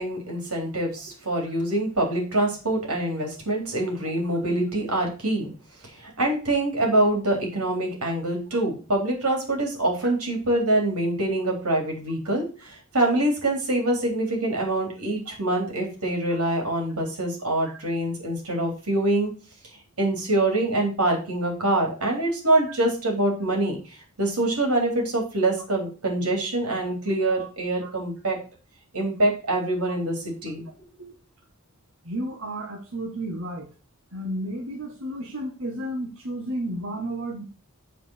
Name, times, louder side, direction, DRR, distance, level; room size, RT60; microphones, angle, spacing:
voice 1, 0.0-5.5 6.0-19.3 20.0-23.8 24.2-28.4 28.9-30.7, right 1 dB, 90° right, 1 dB, 3.9 m, -25 dB
voice 2, 32.0-33.7 34.1-37.4, right 1 dB, 60° right, 1 dB, 1.5 m, -32 dB
7.9 x 4.8 x 6.5 m, 0.34 s
head